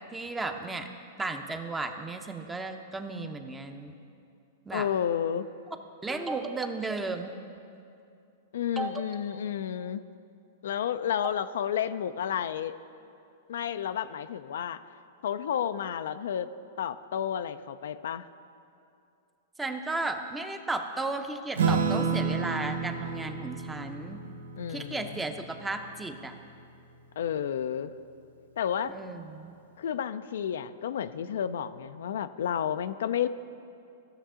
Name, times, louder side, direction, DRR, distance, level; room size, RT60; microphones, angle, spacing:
voice 1, 0.1-0.9 1.2-3.9 4.7-4.9 6.0-7.4 8.8-8.9 19.6-24.2 24.7-26.3 28.9-29.6, right 3 dB, 10° right, 6 dB, 0.7 m, -34 dB
voice 2, 4.7-5.5 8.5-10.0 10.6-12.7 13.5-14.8 15.2-16.5 16.8-18.2 24.6-25.2 27.2-27.9 28.6-28.9 29.8-33.3, left 9 dB, 75° left, 12 dB, 0.3 m, -31 dB
Acoustic guitar / Strum, 21.6-26.4, right 5 dB, 85° right, 0.7 m, -31 dB
15.0 x 6.6 x 3.7 m, 2.5 s
hypercardioid pair, 125°, 0 cm